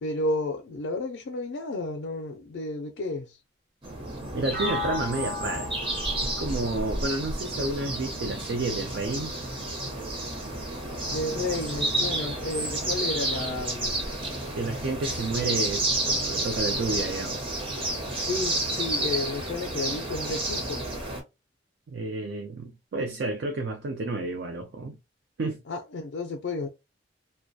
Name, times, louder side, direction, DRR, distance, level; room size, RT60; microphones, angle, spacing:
voice 1, 0.0-3.4 11.1-14.1 18.2-20.9 25.7-26.7, left 2 dB, 75° left, 0.4 m, -32 dB
sound 1, 3.8-21.2, right 1 dB, 30° right, 0.7 m, -30 dB
voice 2, 4.3-5.7 6.2-9.3 14.5-17.4 21.9-25.0 25.4-25.6, right 2 dB, 65° right, 0.4 m, -31 dB
sound 2, 4.5-8.4, left 2 dB, 45° right, 1.1 m, -37 dB
2.3 x 2.1 x 2.6 m
head